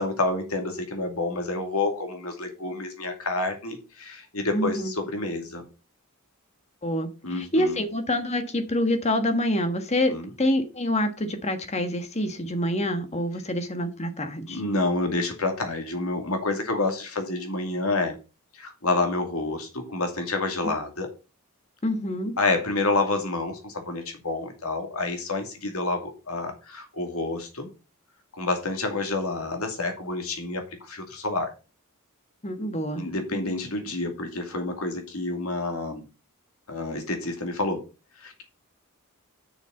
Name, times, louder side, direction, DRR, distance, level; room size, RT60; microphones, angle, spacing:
voice 1, 0.0-5.6 7.2-7.8 10.1-10.3 14.5-18.2 18.5-21.1 22.4-27.7 28.4-31.5 32.9-36.0 36.7-37.8 38.2-38.4, left 2 dB, 75° left, 4 dB, 2.5 m, -28 dB
voice 2, 4.5-4.9 6.8-14.6 21.8-22.3 32.4-33.0 33.3-33.5, left 1 dB, 30° left, 8 dB, 1.4 m, -26 dB
6.6 x 6.5 x 5.4 m, 0.30 s
head